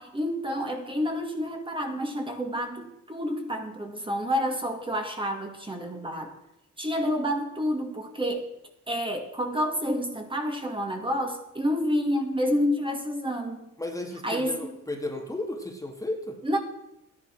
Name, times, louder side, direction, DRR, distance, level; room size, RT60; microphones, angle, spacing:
voice 1, 0.0-6.3 6.8-8.5 8.9-13.7 14.2-14.8 16.4-16.6, equal, 15° right, 3 dB, 2.3 m, -29 dB
voice 2, 13.8-16.4, left 1 dB, 10° left, 2 dB, 2.2 m, -34 dB
13.5 x 11.0 x 6.1 m, 0.88 s
cardioid pair, 90°, 30 cm